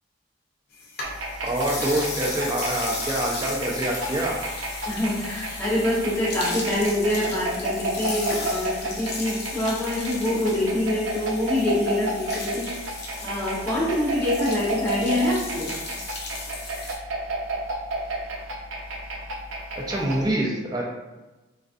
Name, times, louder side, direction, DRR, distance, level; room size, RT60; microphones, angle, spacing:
sound 1, 0.7-17.0, left 3 dB, 55° left, 0.5 m, -36 dB
sound 2, 1.0-20.3, right 1 dB, 85° right, 0.4 m, -32 dB
voice 1, 1.4-4.4 19.9-20.8, right 1 dB, 20° right, -2 dB, 0.4 m, -26 dB
voice 2, 4.9-15.8, left 1 dB, 10° left, -8 dB, 0.8 m, -25 dB
2.4 x 2.3 x 2.4 m, 1.1 s
head